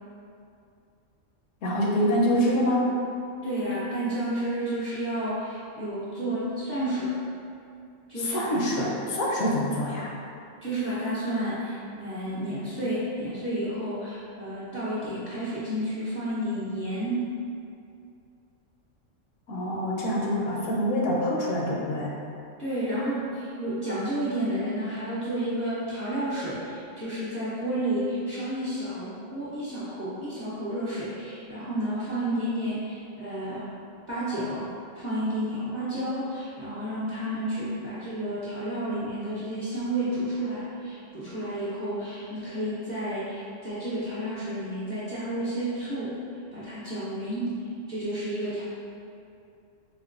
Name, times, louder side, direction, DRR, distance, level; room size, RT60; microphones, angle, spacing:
voice 1, 1.6-2.9 8.2-10.1 19.5-22.2, equal, 75° left, -3 dB, 0.9 m, -25 dB
voice 2, 3.4-7.1 8.1-8.6 10.6-17.2 22.6-33.7 34.1-34.6 34.9-46.1 46.5-47.5 47.9-48.6, right 1 dB, 45° right, -11 dB, 0.6 m, -31 dB
4.3 x 2.1 x 2.4 m, 2.5 s
omnidirectional pair, 1.4 m